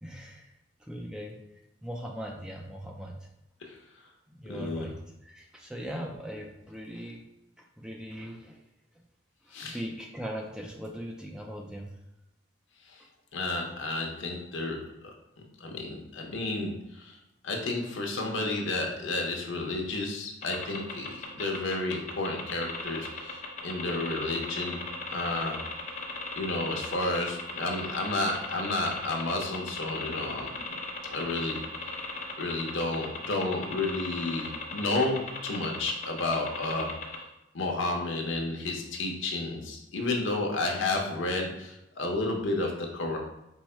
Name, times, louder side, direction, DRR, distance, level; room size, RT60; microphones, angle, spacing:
voice 1, 0.0-0.5 0.8-1.4 1.8-3.3 4.3-7.2 7.8-8.6 9.5-11.9, equal, 5° right, 0 dB, 0.4 m, -40 dB
voice 2, 4.5-4.9 9.5-9.8 12.9-13.0 13.3-14.9 15.6-17.2 17.4-24.8 25.1-25.6 26.3-30.8 31.0-31.6 32.4-36.9 37.5-43.2, left 2 dB, 80° left, 1 dB, 0.8 m, -31 dB
sound 1, 20.4-37.2, left 4 dB, 40° left, 0.9 m, -37 dB
4.6 x 2.1 x 4.3 m, 0.89 s
head